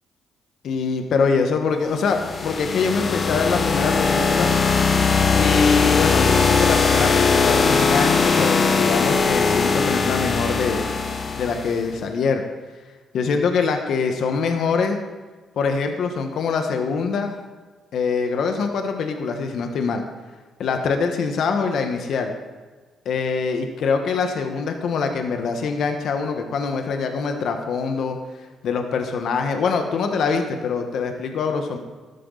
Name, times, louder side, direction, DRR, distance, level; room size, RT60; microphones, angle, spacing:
voice 1, 0.6-4.5 5.3-10.8 11.4-12.4 13.1-15.0 15.6-17.4 17.9-20.0 20.6-22.3 23.0-28.2 28.6-31.8, left 5 dB, 70° left, 5 dB, 1.3 m, -23 dB
sound 1, 2.0-11.8, left 5 dB, 45° left, 1.4 m, -20 dB
13.5 x 12.0 x 4.0 m, 1.4 s
cardioid pair, 90°, 0 cm